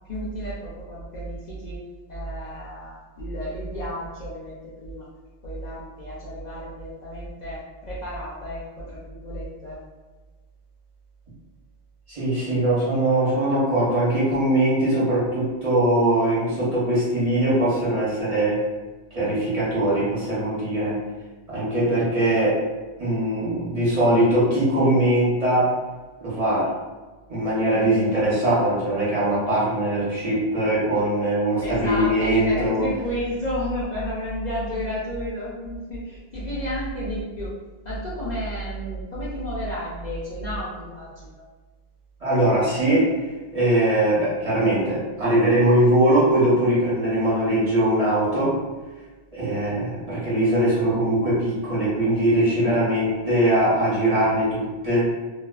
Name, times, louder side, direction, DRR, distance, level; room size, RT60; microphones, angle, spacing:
voice 1, 0.1-1.8 2.1-5.1 5.4-9.8 31.6-37.5 37.8-41.5, equal, 55° left, -7 dB, 0.5 m, -31 dB
voice 2, 12.1-18.6 19.1-21.0 21.5-22.6 23.0-25.7 26.2-26.7 27.3-32.8 42.2-43.1 43.5-48.5 49.3-55.1, right 1 dB, 40° right, -9 dB, 0.9 m, -21 dB
2.4 x 2.3 x 2.3 m, 1.3 s
omnidirectional pair, 1.0 m